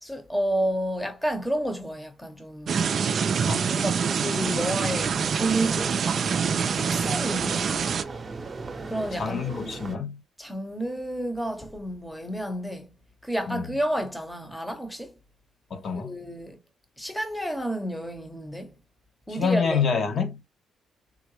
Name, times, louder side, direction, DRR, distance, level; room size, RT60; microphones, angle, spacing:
voice 1, 0.0-2.8 3.7-6.0 6.7-7.7 8.9-9.4 10.4-12.9 13.2-15.2 15.9-16.6 17.0-18.8 19.3-19.8, right 1 dB, 5° left, 0.8 m, -30 dB
sound 1, 2.7-8.0, right 6 dB, 50° right, 0.4 m, -26 dB
sound 2, 4.4-10.0, right 3 dB, 35° right, 0.8 m, -38 dB
voice 2, 9.2-10.2 13.5-13.6 15.7-16.1 19.3-20.4, left 6 dB, 55° left, 0.9 m, -27 dB
3.7 x 2.1 x 3.1 m
cardioid pair, 90°, 0 cm